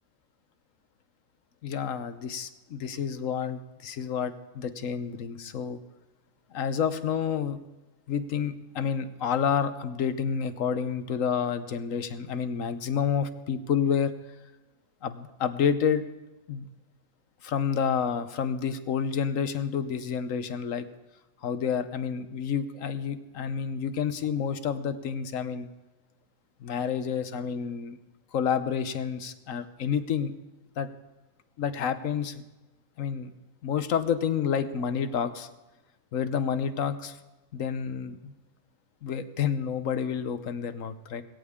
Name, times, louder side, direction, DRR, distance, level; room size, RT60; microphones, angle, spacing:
voice 1, 1.6-5.8 6.5-7.6 8.1-14.1 15.0-16.0 16.5-16.7 17.4-20.9 21.4-25.7 26.6-28.0 28.3-30.3 30.8-30.9 31.6-32.4 33.0-33.3 33.6-35.5 36.1-37.2 37.5-38.3 39.0-41.2, left 7 dB, 65° left, 11 dB, 1.3 m, -29 dB
20.0 x 17.0 x 3.7 m, 1.1 s
omnidirectional pair, 1.5 m